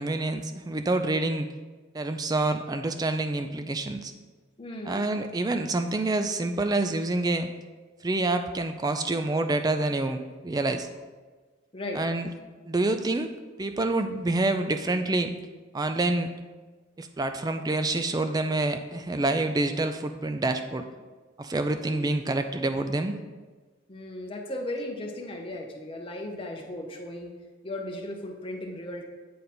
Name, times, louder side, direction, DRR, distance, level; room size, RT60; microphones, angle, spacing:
voice 1, 0.0-1.5 1.9-4.1 4.9-7.5 8.0-10.9 11.9-12.3 12.7-13.3 13.6-15.3 15.7-16.3 17.0-20.8 21.4-23.2, right 2 dB, 20° right, 8 dB, 0.3 m, -27 dB
voice 2, 4.6-5.0 11.7-12.1 21.8-22.2 23.9-27.4 27.6-29.0, left 1 dB, 25° left, 1 dB, 0.8 m, -36 dB
8.4 x 3.9 x 4.3 m, 1.3 s
head